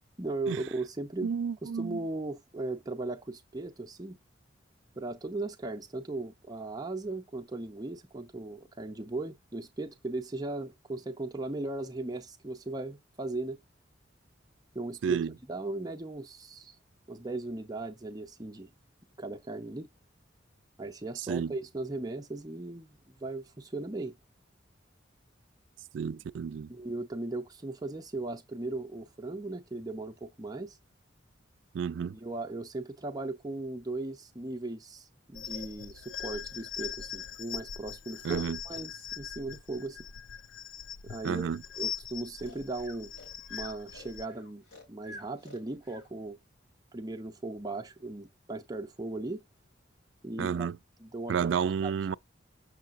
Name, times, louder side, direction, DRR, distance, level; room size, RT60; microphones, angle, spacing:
voice 1, 0.2-1.3 1.6-4.2 5.0-13.6 14.7-15.2 15.5-16.8 17.1-18.7 19.2-19.9 20.8-24.1 26.7-30.8 32.0-40.0 41.0-41.5 41.8-43.1 43.5-46.4 46.9-49.4 50.2-50.7 51.0-51.5 51.8-52.2, right 2 dB, 20° right, 0.6 m, -37 dB
voice 2, 1.2-2.0 15.0-15.3 21.3-21.5 25.9-26.7 31.7-32.2 38.2-38.6 41.2-41.6 50.4-50.8 51.3-52.2, right 7 dB, 70° right, 0.3 m, -31 dB
sound 1, 35.3-44.3, left 8 dB, 80° left, 0.4 m, -41 dB
Breathing, 42.4-46.1, left 1 dB, 65° left, 4.5 m, -50 dB
6.5 x 6.4 x 2.5 m
head